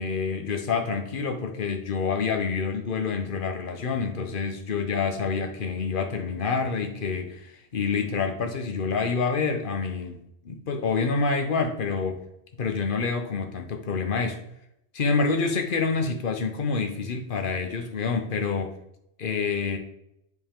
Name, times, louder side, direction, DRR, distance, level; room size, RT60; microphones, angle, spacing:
voice 1, 0.0-10.2 10.4-12.2 12.6-14.4 14.9-18.7 19.2-19.8, left 5 dB, 50° left, 5 dB, 1.1 m, -27 dB
7.6 x 5.3 x 3.7 m, 0.79 s
omnidirectional pair, 1.2 m